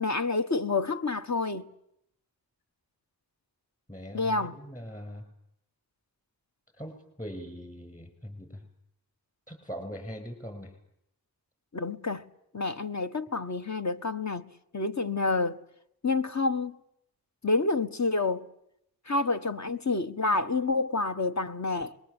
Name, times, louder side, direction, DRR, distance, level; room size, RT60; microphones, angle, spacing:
voice 1, 0.0-1.7 4.1-4.6 11.7-12.2 12.5-15.6 16.0-16.8 17.4-18.5 19.1-21.9, left 3 dB, 45° left, 1.4 m, -28 dB
voice 2, 3.9-5.2 6.7-8.6 9.5-10.7, equal, 20° left, 8.0 m, -41 dB
26.0 x 22.5 x 9.0 m
wide cardioid pair, 70°, 38 cm